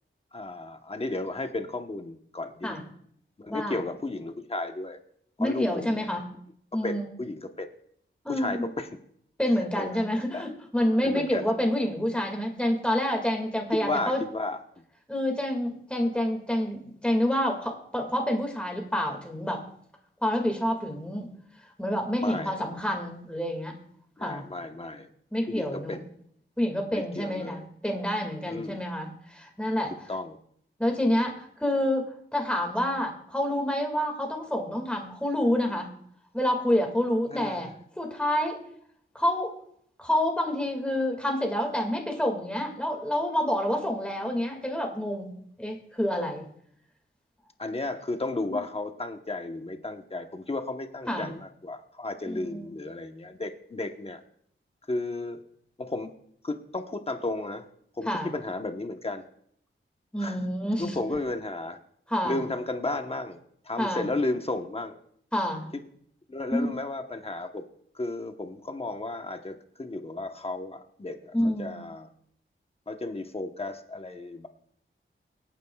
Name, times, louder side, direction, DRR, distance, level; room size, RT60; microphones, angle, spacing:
voice 1, 0.3-2.8 3.4-5.0 5.4-6.0 6.7-7.7 8.3-8.9 9.7-10.1 10.3-10.5 11.0-11.4 13.7-14.6 22.2-22.6 24.2-25.1 25.5-26.1 26.9-27.6 28.5-28.8 30.1-30.4 37.3-37.7 47.6-54.2 54.9-55.4 55.8-56.1 56.4-57.7 58.0-59.2 60.2-60.4 60.8-61.8 62.2-63.4 63.6-65.0 65.7-65.8 66.3-67.6 67.9-72.1 72.9-74.5, left 2 dB, 30° left, 6 dB, 1.0 m, -33 dB
voice 2, 3.5-3.8 5.4-6.2 6.7-7.0 8.2-8.7 9.4-14.2 15.1-19.6 20.2-21.3 21.8-23.8 24.2-24.5 25.3-26.0 26.6-29.9 30.8-35.9 36.3-37.7 38.0-38.6 39.1-39.5 40.0-46.4 48.4-48.6 51.1-51.3 52.3-52.7 58.1-58.3 60.1-61.0 62.1-62.4 63.8-64.0 65.3-65.7 66.5-66.7 71.3-71.7, left 1 dB, 5° left, 2 dB, 2.1 m, -28 dB
24.5 x 9.2 x 2.3 m, 0.67 s
wide cardioid pair, 110°, 21 cm